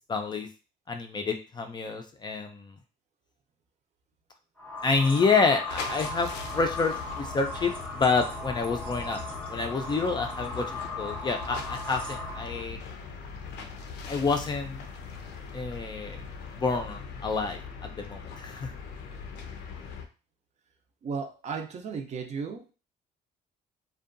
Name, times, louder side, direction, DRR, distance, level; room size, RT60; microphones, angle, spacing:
voice 1, 0.1-0.5 0.9-2.7 4.8-9.2 9.5-12.8 14.1-14.8 15.5-16.2 16.6-18.7, left 4 dB, 25° left, 4 dB, 0.4 m, -28 dB
sound 1, 4.6-12.6, left 2 dB, 5° left, 0.8 m, -37 dB
sound 2, 5.7-20.1, left 5 dB, 85° left, 0.5 m, -41 dB
voice 2, 21.0-22.6, right 5 dB, 45° right, 4 dB, 0.5 m, -34 dB
2.6 x 2.2 x 2.5 m, 0.33 s
cardioid pair, 110°, 17 cm